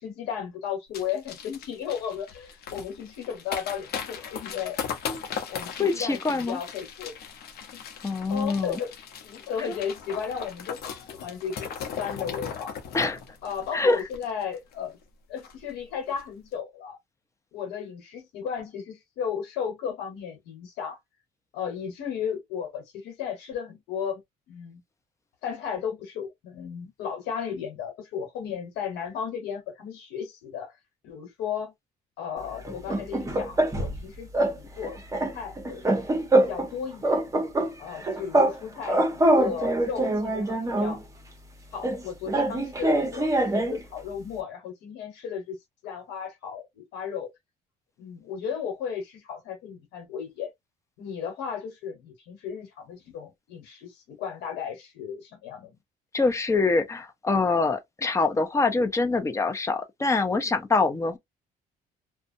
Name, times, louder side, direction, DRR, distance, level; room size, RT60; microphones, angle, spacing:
voice 1, 0.0-4.8 5.5-7.1 7.6-7.8 8.3-8.9 9.2-12.7 13.4-15.0 15.3-17.0 17.5-21.0 21.5-24.2 24.5-24.8 25.4-30.7 31.0-31.7 32.2-35.9 36.4-37.2 37.8-41.0 41.7-45.6 45.8-47.3 48.0-50.5 51.0-55.8, left 7 dB, 90° left, 1.2 m, -35 dB
sound 1, 0.9-14.7 15.0-15.1 15.4-15.7 16.1-16.2, left 7 dB, 65° left, 0.8 m, -38 dB
voice 2, 5.8-6.6 8.0-8.8 9.6-9.7 12.9-13.2 13.7-14.0 56.1-61.2, left 3 dB, 15° left, 0.6 m, -25 dB
sound 2, 32.7-34.0 34.3-34.6 34.8-36.7 37.0-38.6 38.8-41.0 41.8-43.8, right 1 dB, 20° right, 0.9 m, -24 dB
2.5 x 2.2 x 2.6 m
cardioid pair, 110°, 17 cm